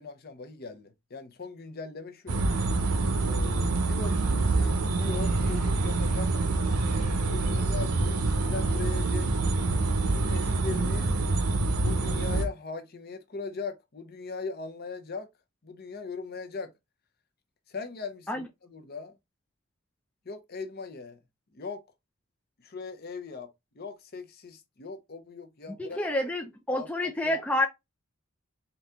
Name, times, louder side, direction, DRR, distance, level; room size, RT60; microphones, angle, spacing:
voice 1, 0.0-2.4 3.2-6.7 7.3-9.3 10.0-11.1 11.8-15.3 15.6-16.7 17.7-19.2 20.3-21.2 21.5-21.8 22.6-23.5 23.7-26.4 26.7-27.4, left 4 dB, 45° left, 0.7 m, -40 dB
sound 1, 2.3-12.5, right 3 dB, 85° right, 0.8 m, -26 dB
voice 2, 25.7-27.7, left 1 dB, 5° left, 0.4 m, -29 dB
3.9 x 2.8 x 3.4 m
head